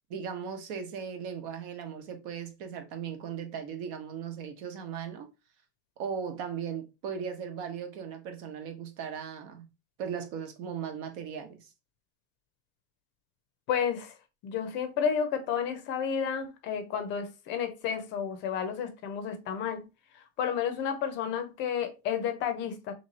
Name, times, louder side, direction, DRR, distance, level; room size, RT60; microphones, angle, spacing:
voice 1, 0.1-5.3 6.0-9.6 10.0-11.7, right 7 dB, 55° right, 1.1 m, -37 dB
voice 2, 13.7-14.1 14.4-19.9 20.4-22.9, left 7 dB, 35° left, 0.6 m, -31 dB
3.2 x 3.1 x 3.9 m
supercardioid pair, 160°, 32 cm